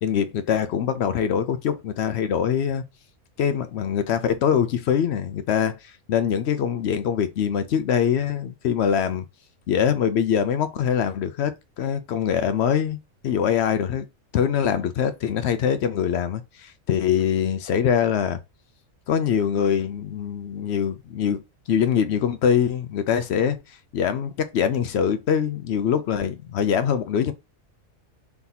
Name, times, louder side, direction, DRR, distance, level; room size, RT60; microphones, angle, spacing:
voice 1, 0.0-2.8 3.4-9.2 9.7-13.0 13.2-14.1 14.3-18.4 19.1-21.4 21.7-23.6 23.9-27.3, left 8 dB, 65° left, 0.7 m, -23 dB
3.5 x 2.8 x 3.9 m
omnidirectional pair, 1.4 m